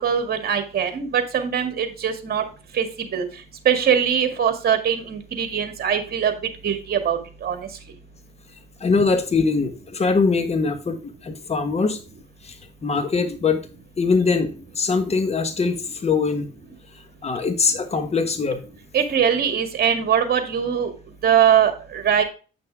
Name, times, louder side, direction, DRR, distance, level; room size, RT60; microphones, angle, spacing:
voice 1, 0.0-2.4 2.7-2.9 3.1-3.2 3.7-6.3 6.6-7.7 18.9-20.9 21.2-22.2, right 8 dB, 50° right, 6 dB, 2.0 m, -21 dB
voice 2, 8.8-12.0 12.4-12.6 12.8-13.6 14.0-16.5 17.2-18.6, left 4 dB, 30° left, 8 dB, 1.3 m, -22 dB
8.8 x 6.0 x 3.5 m, 0.34 s
cardioid pair, 90°, 20 cm